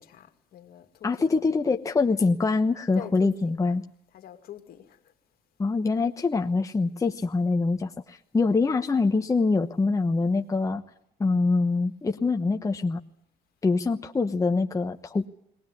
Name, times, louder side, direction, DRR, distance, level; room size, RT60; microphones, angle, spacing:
voice 1, 0.0-1.8 2.9-5.1, left 10 dB, 65° left, 2.2 m, -46 dB
voice 2, 1.0-3.8 5.6-10.8 11.2-13.0 13.6-15.3, left 3 dB, 20° left, 1.0 m, -24 dB
20.5 x 19.0 x 9.6 m
cardioid pair, 110°, 17 cm